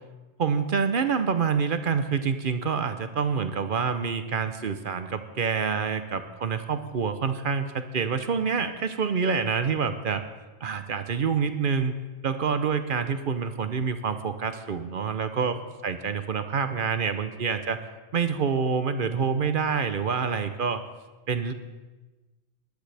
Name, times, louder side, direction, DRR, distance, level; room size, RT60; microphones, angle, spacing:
voice 1, 0.4-10.2 10.6-11.9 12.2-17.8 18.1-20.8 21.3-21.5, right 6 dB, 55° right, 9 dB, 0.8 m, -27 dB
18.5 x 11.5 x 3.4 m, 1.2 s
omnidirectional pair, 1.2 m